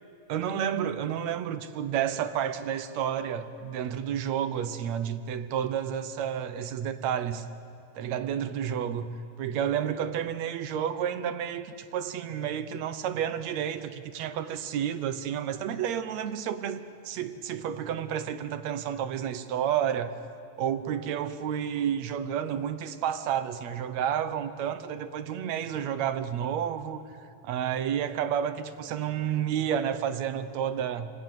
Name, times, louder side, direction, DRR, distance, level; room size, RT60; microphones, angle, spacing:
voice 1, 0.3-7.5 8.0-9.1 9.4-20.2 20.6-31.1, right 9 dB, 70° right, 2.2 m, -30 dB
28.0 x 20.0 x 9.3 m
omnidirectional pair, 3.4 m